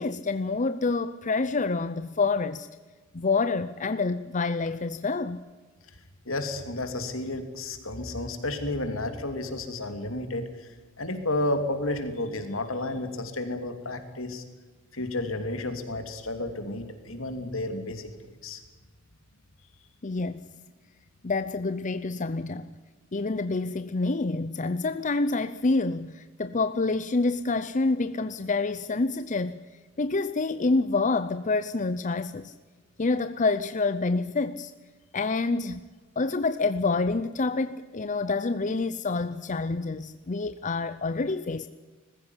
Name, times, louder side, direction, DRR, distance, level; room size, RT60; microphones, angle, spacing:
voice 1, 0.0-2.7 3.1-5.4 20.0-20.4 21.2-22.7 23.1-29.6 30.0-32.5 33.0-34.7 35.1-35.8 36.2-41.7, left 3 dB, 40° left, 0.6 m, -27 dB
voice 2, 6.2-10.7 11.0-14.4 14.9-18.1 18.4-18.6, left 2 dB, 75° left, 3.1 m, -31 dB
20.5 x 15.5 x 9.9 m
head